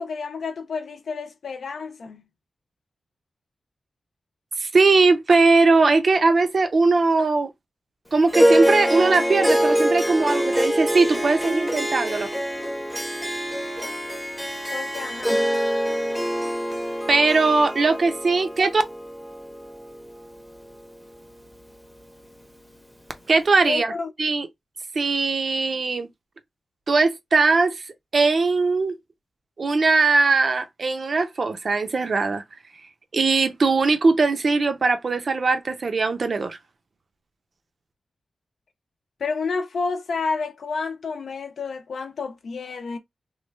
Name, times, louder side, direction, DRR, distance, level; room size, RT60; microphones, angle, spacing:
voice 1, 0.0-2.2 14.7-15.5 23.7-24.1 39.2-43.0, left 4 dB, 75° left, 0.5 m, -30 dB
voice 2, 4.6-7.5 8.1-12.3 17.1-18.8 23.3-23.9 24.2-24.5 24.9-26.1 26.9-27.8 28.1-28.9 29.6-32.4 33.1-36.6, right 3 dB, 50° right, 0.6 m, -20 dB
Harp, 8.3-20.8, equal, 5° left, 0.7 m, -25 dB
3.1 x 2.2 x 3.2 m
wide cardioid pair, 125°, 0 cm